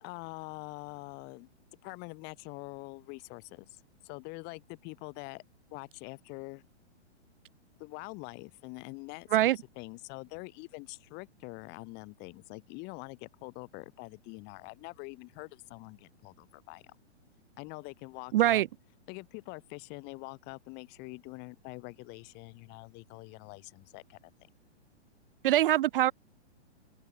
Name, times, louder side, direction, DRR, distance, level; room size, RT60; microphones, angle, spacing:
voice 1, 0.0-1.5 1.8-3.7 4.0-5.4 5.7-6.6 7.8-16.8 17.6-18.6 19.1-24.3, left 28 dB, 30° left, 1.1 m, -45 dB
voice 2, 18.3-18.7 25.4-26.1, right 13 dB, 50° right, 0.5 m, -23 dB
open air
hypercardioid pair, 130°, 35 cm